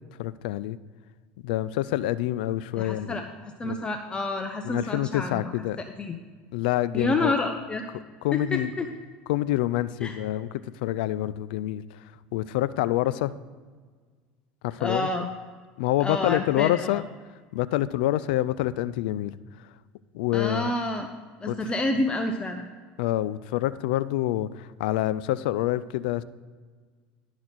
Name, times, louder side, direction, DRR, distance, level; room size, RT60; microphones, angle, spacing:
voice 1, 0.2-0.8 1.4-3.2 3.6-3.9 4.6-5.8 6.5-7.3 8.2-8.7 9.3-10.5 10.8-11.8 12.3-13.3 14.6-15.3 15.8-17.1 17.5-19.3 20.1-20.7 21.5-21.6 23.0-26.2, left 14 dB, 80° left, 16 dB, 0.3 m, -27 dB
voice 2, 2.8-6.2 6.9-7.8 8.3-8.9 10.0-10.2 14.8-15.3 16.0-17.0 20.3-21.1 21.4-22.7, left 2 dB, 20° left, 5 dB, 0.7 m, -29 dB
11.5 x 4.1 x 6.1 m, 1.5 s
supercardioid pair, 105°, 5 cm